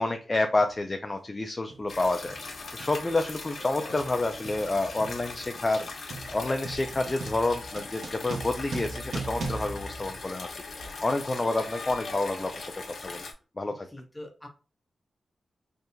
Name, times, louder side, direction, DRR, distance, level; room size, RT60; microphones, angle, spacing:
voice 1, 0.0-10.5 11.0-13.2 13.6-13.9, left 2 dB, 25° left, 6 dB, 0.4 m, -29 dB
sound 1, 0.6-0.8 1.7-2.0 2.3-10.8, right 3 dB, 70° right, 0.7 m, -39 dB
sound 2, 1.9-13.3, left 3 dB, 60° left, 0.9 m, -40 dB
voice 2, 13.8-14.5, left 1 dB, 10° left, 1 dB, 1.0 m, -43 dB
3.4 x 2.7 x 2.6 m, 0.34 s
wide cardioid pair, 100°, 0 cm